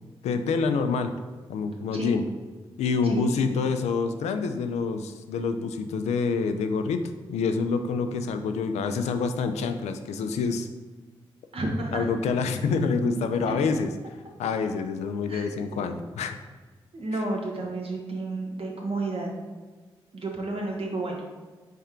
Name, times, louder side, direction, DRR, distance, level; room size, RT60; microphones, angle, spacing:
voice 1, 0.2-1.1 1.5-2.3 2.8-10.7 11.9-13.9 14.4-16.4 17.1-17.2, left 4 dB, 80° left, 8 dB, 0.4 m, -27 dB
voice 2, 11.5-12.1 15.3-16.0 16.9-19.3 20.1-21.2, right 2 dB, 55° right, 0 dB, 1.1 m, -31 dB
4.3 x 3.3 x 3.6 m, 1.3 s
supercardioid pair, 40°, 11 cm